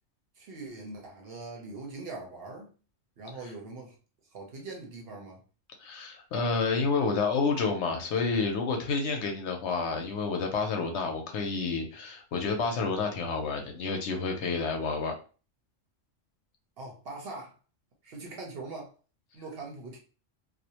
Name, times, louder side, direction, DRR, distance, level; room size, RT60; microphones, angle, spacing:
voice 1, 0.4-2.7 3.2-4.0 4.3-5.4 16.8-17.5 18.0-18.9 19.3-20.0, right 3 dB, 60° right, 0.8 m, -42 dB
voice 2, 5.8-15.1, left 4 dB, 70° left, 0.8 m, -29 dB
2.5 x 2.0 x 2.8 m
omnidirectional pair, 1.3 m